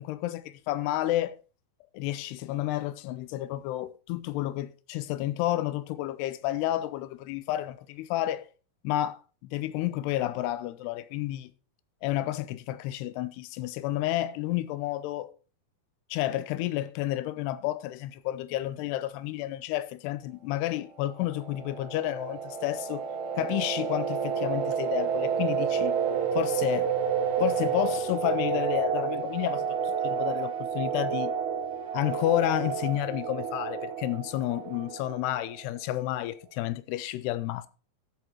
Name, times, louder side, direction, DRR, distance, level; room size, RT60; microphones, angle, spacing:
voice 1, 0.0-1.4 1.9-8.5 8.8-11.5 12.0-15.3 16.1-23.1 23.4-26.0 26.3-26.9 27.4-31.3 31.9-37.7, left 14 dB, 85° left, 2.6 m, -31 dB
sound 1, 21.0-35.5, right 7 dB, 70° right, 3.6 m, -30 dB
13.5 x 8.5 x 2.9 m
omnidirectional pair, 4.7 m